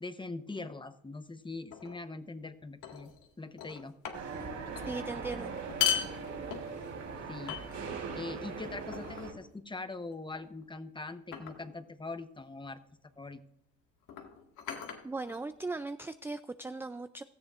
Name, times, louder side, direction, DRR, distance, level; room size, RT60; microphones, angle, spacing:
voice 1, 0.0-3.1 3.4-4.0 7.3-7.6 8.1-12.8 13.2-13.4, left 3 dB, 15° left, 11 dB, 0.9 m, -42 dB
sound 1, 1.7-2.0 2.8-3.3 3.6-4.5 4.7-4.9 5.6-7.0 7.5-8.1 8.9-9.4 10.3-10.6 11.3-11.7 12.9-13.1 14.0-15.8, left 9 dB, 85° left, 1.9 m, -37 dB
sound 2, 4.1-9.3, right 5 dB, 65° right, 3.8 m, -40 dB
voice 2, 4.9-5.5 15.0-17.2, right 3 dB, 10° right, 11 dB, 0.4 m, -38 dB
17.0 x 14.0 x 2.5 m, 0.74 s
cardioid pair, 90°, 30 cm